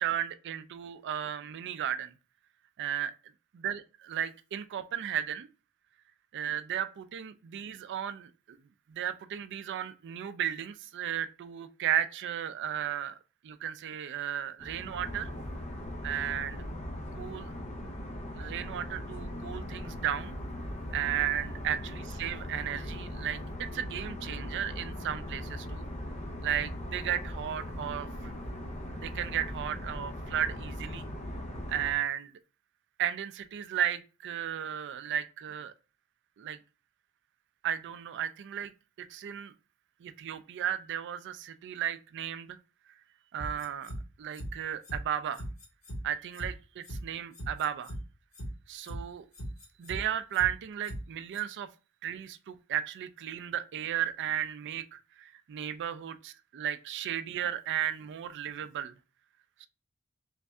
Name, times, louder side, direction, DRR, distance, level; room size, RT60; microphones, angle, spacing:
voice 1, 0.0-2.1 2.8-3.1 3.6-5.5 6.3-8.6 8.9-15.3 16.0-16.6 17.1-17.5 18.4-20.4 20.9-25.9 26.4-28.3 28.9-31.1 31.7-32.3 33.0-35.7 36.4-36.6 37.6-38.7 39.0-39.5 40.0-42.6 43.3-43.9 44.2-45.4 46.0-47.9 48.7-49.2 49.8-51.7 52.0-58.9 59.6-59.7, right 10 dB, 55° right, 0.3 m, -34 dB
sound 1, 14.6-31.9, left 1 dB, 30° left, 0.6 m, -39 dB
sound 2, 43.4-44.0 44.3-44.5 44.8-45.0 45.3-46.0 46.3-46.5 46.8-47.0 47.3-48.0 48.3-48.5 48.8-49.0 49.3-50.0 50.3-50.5 50.8-51.0 51.3-51.4, equal, 70° left, 1.8 m, -39 dB
3.2 x 2.6 x 3.4 m
head